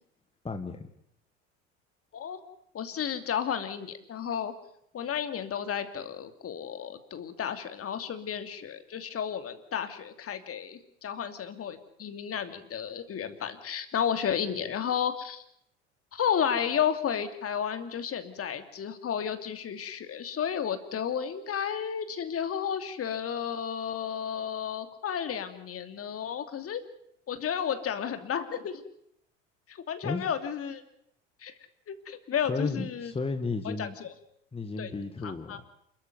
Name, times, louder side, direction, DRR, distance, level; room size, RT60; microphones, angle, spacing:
voice 1, 0.4-0.9 30.0-30.2 32.5-34.0 34.5-35.6, left 3 dB, 15° left, 6 dB, 1.9 m, -33 dB
voice 2, 2.7-4.5 4.9-15.4 16.1-26.8 27.3-28.8 29.7-30.8 31.4-31.5 31.9-33.1 33.6-34.1 34.8-34.9 35.2-35.6, left 8 dB, 40° left, 9 dB, 2.9 m, -32 dB
28.0 x 14.0 x 9.4 m, 0.72 s
hypercardioid pair, 70°, 36 cm